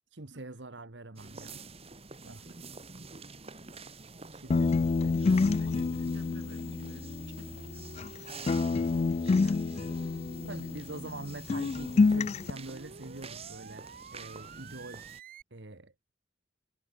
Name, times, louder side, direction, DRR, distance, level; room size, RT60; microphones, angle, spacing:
voice 1, 0.1-1.6 2.2-2.5 4.3-6.0 9.4-9.6 10.4-15.1 15.5-15.9, right 2 dB, 65° right, 1.6 m, -45 dB
sound 1, 1.2-15.2, right 4 dB, 35° right, 2.3 m, -49 dB
sound 2, 4.5-8.2 8.5-11.2 11.5-12.5, left 4 dB, 35° left, 0.3 m, -28 dB
voice 2, 5.1-8.1 9.7-10.3, right 1 dB, 85° right, 6.3 m, -57 dB
sound 3, 5.4-15.4, right 3 dB, 50° right, 0.9 m, -50 dB
head